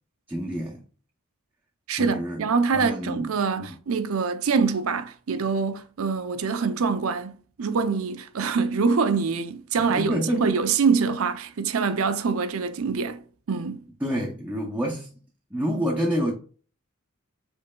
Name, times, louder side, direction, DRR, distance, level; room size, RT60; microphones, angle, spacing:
voice 1, 0.3-0.8 1.9-2.4 2.7-3.3 3.6-3.7 9.9-10.6 14.0-15.1 15.5-16.3, equal, 10° right, 0.6 m, -28 dB
voice 2, 1.9-13.2 13.5-13.8, right 5 dB, 70° right, 0.5 m, -25 dB
5.2 x 3.9 x 2.2 m
head